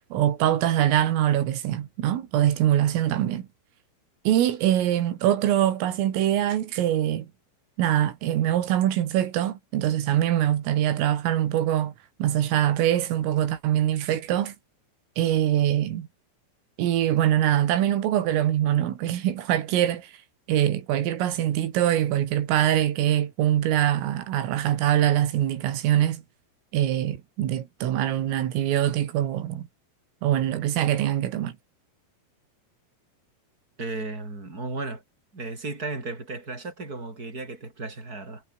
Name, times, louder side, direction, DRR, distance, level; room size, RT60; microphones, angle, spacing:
voice 1, 0.1-3.4 4.3-7.3 7.8-11.9 12.2-14.5 15.2-16.1 16.8-20.1 20.5-26.2 26.7-29.6 30.2-31.5, right 11 dB, 85° right, 4.9 m, -23 dB
voice 2, 33.8-35.0 35.3-38.4, right 3 dB, 15° right, 6.6 m, -34 dB
omnidirectional pair, 5.7 m